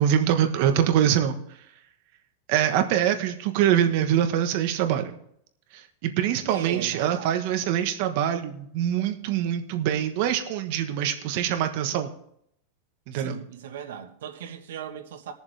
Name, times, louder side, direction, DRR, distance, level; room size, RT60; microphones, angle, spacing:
voice 1, 0.0-1.4 2.5-5.1 5.7-12.1 13.1-13.4, right 10 dB, 50° right, 1.2 m, -24 dB
voice 2, 6.5-7.3 13.1-15.3, right 9 dB, 90° right, 1.4 m, -38 dB
20.5 x 7.1 x 3.4 m
supercardioid pair, 160°, 0 cm